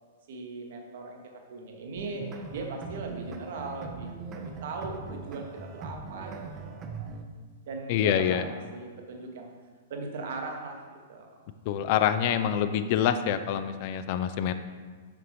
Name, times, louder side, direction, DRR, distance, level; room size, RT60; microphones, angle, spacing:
voice 1, 0.3-4.1 4.3-7.1 7.7-9.5 9.9-11.3, right 3 dB, 50° right, 2 dB, 0.9 m, -39 dB
sound 1, 2.0-7.2, right 4 dB, 25° right, 0.5 m, -40 dB
voice 2, 7.9-8.4 11.7-14.5, left 9 dB, 45° left, 10 dB, 0.3 m, -26 dB
5.9 x 5.8 x 3.2 m, 1.5 s
figure-of-eight pair, 100°, 0 cm